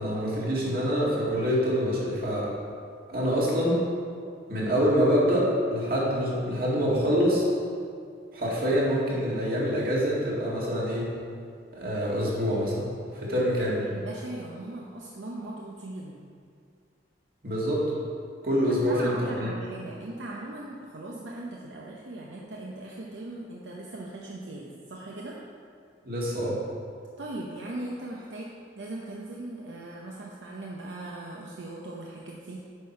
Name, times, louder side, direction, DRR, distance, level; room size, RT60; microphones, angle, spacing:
voice 1, 0.0-2.5 3.1-3.8 4.5-7.5 8.3-11.1 11.7-13.9 17.4-17.9 18.4-19.5 26.0-26.6, equal, 50° right, -5 dB, 1.9 m, -26 dB
voice 2, 13.4-16.2 18.7-25.4 27.2-32.7, right 1 dB, 75° right, -3 dB, 0.8 m, -39 dB
8.9 x 5.7 x 4.4 m, 2.2 s
head